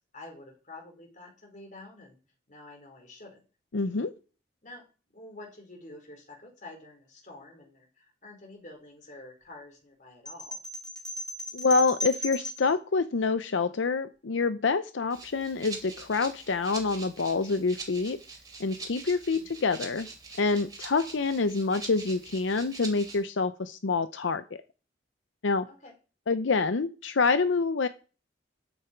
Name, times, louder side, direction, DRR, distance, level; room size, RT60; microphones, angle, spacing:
voice 1, 0.0-2.2 2.5-3.4 4.6-4.8 5.1-10.6 19.3-19.5 25.7-25.9, left 2 dB, 45° left, 2 dB, 4.4 m, -48 dB
voice 2, 3.7-4.1 11.5-18.2 18.6-20.1 20.4-24.6 25.4-25.7 26.3-27.9, left 4 dB, 90° left, 11 dB, 0.6 m, -27 dB
sound 1, 10.3-12.7, equal, 5° left, 3.0 m, -36 dB
Rattle (instrument), 15.1-23.2, right 4 dB, 20° right, 3.1 m, -44 dB
13.5 x 8.9 x 4.5 m, 0.37 s
head